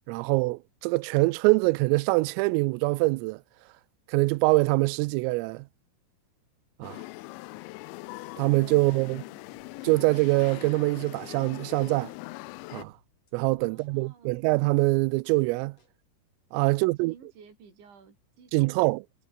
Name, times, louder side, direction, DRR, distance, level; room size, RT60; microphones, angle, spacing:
voice 1, 0.1-3.4 4.1-5.7 6.8-7.0 8.4-9.2 9.8-12.1 12.7-12.9 13.3-15.8 16.5-17.1 18.5-19.0, right 24 dB, 90° right, 3.2 m, -24 dB
sound 1, 6.8-12.9, left 23 dB, 85° left, 2.6 m, -42 dB
voice 2, 8.7-9.5 13.6-14.4 16.6-19.0, right 5 dB, 60° right, 8.8 m, -53 dB
sound 2, 9.3-11.3 11.8-12.0 12.8-15.3 15.8-16.0, left 3 dB, 30° left, 8.1 m, -61 dB
omnidirectional pair, 5.9 m